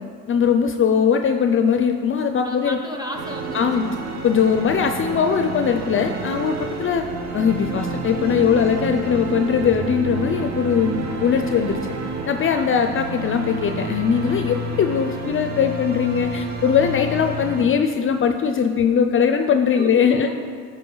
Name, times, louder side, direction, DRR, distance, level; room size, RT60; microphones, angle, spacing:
voice 1, 0.3-2.8 3.5-3.9 4.2-7.1 7.3-11.8 12.3-20.3, left 7 dB, 45° left, 6 dB, 0.5 m, -20 dB
voice 2, 2.4-3.9 12.5-12.7 19.4-20.3, right 1 dB, 15° right, 1 dB, 1.3 m, -34 dB
sound 1, 3.1-17.6, right 2 dB, 60° right, 1.0 m, -30 dB
11.5 x 4.4 x 3.9 m, 2.1 s
cardioid pair, 90°, 30 cm